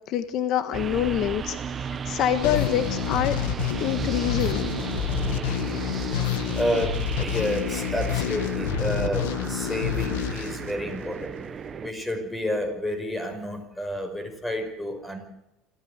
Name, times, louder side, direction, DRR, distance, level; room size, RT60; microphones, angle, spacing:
voice 1, 0.1-3.4 3.8-4.6, left 10 dB, 50° left, 11 dB, 1.6 m, -26 dB
sound 1, 0.7-11.9, right 6 dB, 25° right, 1.3 m, -34 dB
sound 2, 2.4-11.3, left 9 dB, 90° left, 2.0 m, -28 dB
voice 2, 6.6-11.4 11.8-15.3, equal, 10° left, 8 dB, 5.4 m, -30 dB
26.5 x 15.0 x 8.1 m, 0.87 s
cardioid pair, 130°, 0 cm